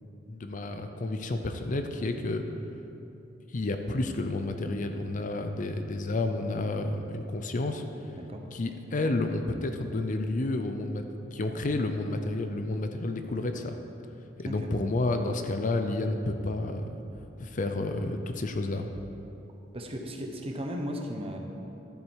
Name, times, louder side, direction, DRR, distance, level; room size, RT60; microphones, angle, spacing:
voice 1, 0.0-2.4 3.5-7.8 8.5-11.0 11.3-13.8 14.4-16.8 17.4-18.9, left 2 dB, 45° left, 6 dB, 0.6 m, -30 dB
voice 2, 19.7-21.4, equal, 30° right, 2 dB, 1.0 m, -35 dB
11.5 x 7.8 x 4.7 m, 2.9 s
head